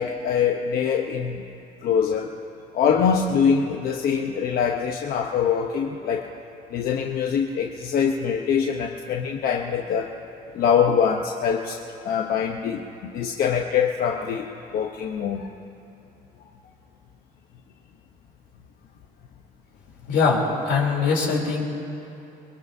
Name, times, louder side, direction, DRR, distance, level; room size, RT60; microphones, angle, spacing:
voice 1, 0.0-1.4 1.8-2.3 2.7-6.3 6.7-10.1 10.5-11.8 12.0-14.5 14.7-15.4, left 7 dB, 60° left, 2 dB, 0.9 m, -23 dB
voice 2, 20.1-21.6, left 4 dB, 85° left, -2 dB, 3.4 m, -22 dB
23.5 x 22.0 x 2.7 m, 2.8 s
cardioid pair, 110°, 17 cm